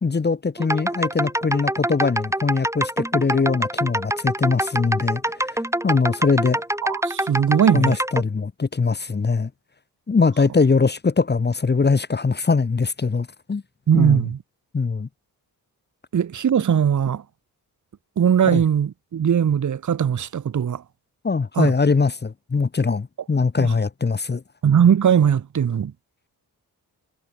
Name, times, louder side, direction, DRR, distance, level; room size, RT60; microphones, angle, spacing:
voice 1, 0.0-6.6 7.7-9.5 10.1-13.6 13.9-14.2 14.7-15.1 18.5-18.6 21.2-24.4, left 4 dB, 25° left, 0.9 m, -22 dB
sound 1, 0.6-8.2, right 1 dB, 5° right, 2.5 m, -25 dB
voice 2, 6.8-8.0 13.9-14.4 16.1-17.2 18.2-20.8 21.5-21.7 23.6-23.7 24.6-25.9, right 8 dB, 50° right, 0.9 m, -19 dB
cardioid pair, 65°, 38 cm